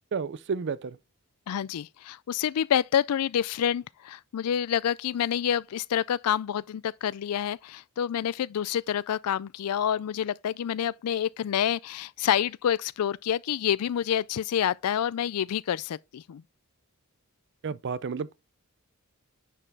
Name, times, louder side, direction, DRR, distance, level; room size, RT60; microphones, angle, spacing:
voice 1, 0.1-1.0 17.6-18.3, right 5 dB, 55° right, 0.5 m, -31 dB
voice 2, 1.5-16.4, left 9 dB, 80° left, 0.4 m, -28 dB
9.9 x 4.5 x 3.4 m
head